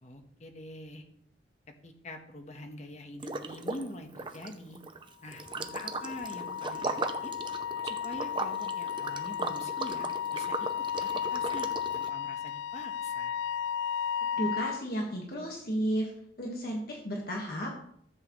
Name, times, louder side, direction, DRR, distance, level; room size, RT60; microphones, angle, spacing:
voice 1, 0.0-1.0 1.8-4.8 5.2-6.9 7.2-7.3 7.8-10.5 10.9-13.4, left 1 dB, 40° left, 5 dB, 1.2 m, -45 dB
Liquid, 3.2-3.9 4.1-12.1, right 3 dB, 30° right, 0.6 m, -37 dB
Wind instrument woodwind instrument, 5.4-14.8, left 8 dB, 85° left, 0.3 m, -34 dB
voice 2, 14.4-16.1 16.4-17.8, equal, 55° left, -1 dB, 1.7 m, -33 dB
13.5 x 7.7 x 3.2 m, 0.66 s
head